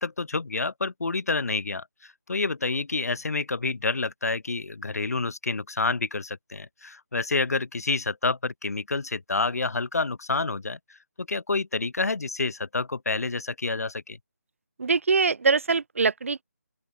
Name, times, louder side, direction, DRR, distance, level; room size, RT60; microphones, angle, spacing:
voice 1, 0.0-10.8 11.2-14.2, left 3 dB, 65° left, 0.8 m, -28 dB
voice 2, 14.8-16.4, right 4 dB, 50° right, 0.7 m, -23 dB
open air
figure-of-eight pair, 160°, 9 cm